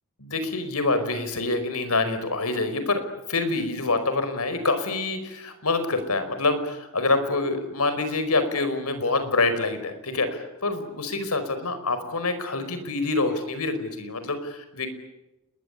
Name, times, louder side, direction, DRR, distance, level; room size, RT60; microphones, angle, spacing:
voice 1, 0.2-3.0 3.3-14.9, left 3 dB, 75° left, 10 dB, 5.1 m, -26 dB
29.5 x 21.5 x 8.4 m, 0.96 s
head